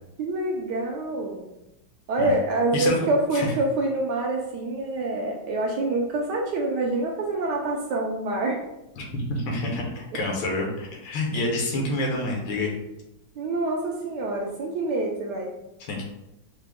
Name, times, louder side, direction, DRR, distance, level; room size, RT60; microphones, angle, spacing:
voice 1, 0.2-1.4 2.1-8.6 13.4-15.5, right 2 dB, 70° right, 0 dB, 1.1 m, -26 dB
voice 2, 9.0-12.7 15.8-16.0, left 2 dB, 75° left, 0 dB, 1.6 m, -28 dB
4.7 x 2.2 x 3.5 m, 0.89 s
omnidirectional pair, 2.2 m